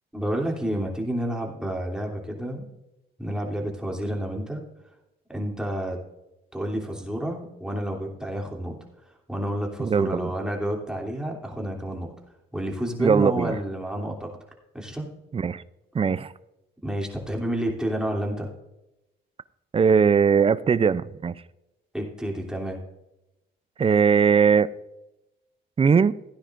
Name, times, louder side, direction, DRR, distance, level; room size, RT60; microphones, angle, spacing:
voice 1, 0.1-2.7 3.2-4.6 5.3-6.0 6.5-8.8 9.3-12.1 12.5-14.3 14.7-15.1 16.8-18.5 21.9-22.8, right 1 dB, 5° right, 3.0 m, -29 dB
voice 2, 9.8-10.3 13.0-13.6 15.3-15.6 15.9-16.3 19.7-21.3 23.8-24.7 25.8-26.1, right 6 dB, 30° right, 0.5 m, -20 dB
16.5 x 9.8 x 2.6 m
cardioid pair, 90°, 20 cm